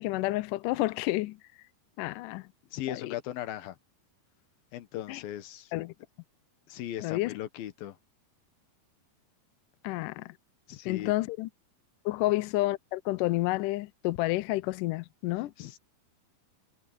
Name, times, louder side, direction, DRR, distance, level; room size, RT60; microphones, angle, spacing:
voice 1, 0.0-1.4 2.0-2.5 2.9-3.2 5.1-5.2 5.7-5.9 7.0-7.4 9.8-10.4 10.9-11.5 12.1-15.5, left 18 dB, 90° left, 1.9 m, -30 dB
voice 2, 2.7-3.8 4.7-5.7 6.7-8.0 10.7-11.1 15.6-15.8, left 12 dB, 70° left, 2.9 m, -38 dB
omnidirectional pair, 4.5 m